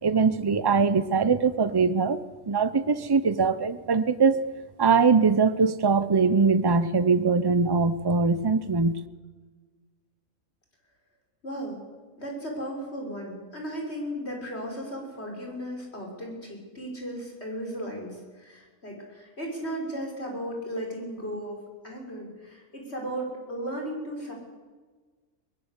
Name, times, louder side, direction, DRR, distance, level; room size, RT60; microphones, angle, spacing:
voice 1, 0.0-2.2 2.5-4.5 4.8-9.0, right 4 dB, 20° right, 13 dB, 0.7 m, -22 dB
voice 2, 11.4-11.8 12.2-21.6 21.8-24.3, equal, 45° left, 0 dB, 6.0 m, -35 dB
22.0 x 20.5 x 8.4 m, 1.4 s
omnidirectional pair, 1.5 m